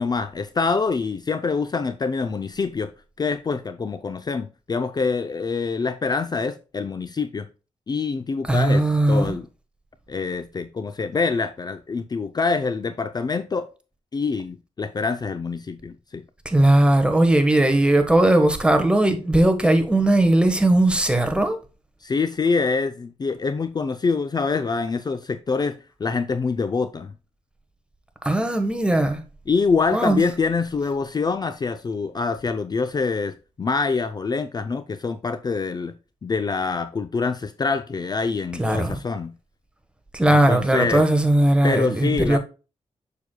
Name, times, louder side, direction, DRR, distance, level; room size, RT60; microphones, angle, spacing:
voice 1, 0.0-2.9 3.2-7.5 7.9-9.5 10.1-13.7 14.1-16.2 22.0-27.1 29.5-36.0 36.2-39.3 40.3-41.0 41.6-42.4, left 4 dB, 35° left, 0.5 m, -25 dB
voice 2, 8.5-9.4 16.4-21.6 28.2-29.2 29.9-30.2 38.6-39.0 40.1-42.4, right 1 dB, 10° right, 1.2 m, -18 dB
7.1 x 6.4 x 2.2 m
cardioid pair, 90°, 12 cm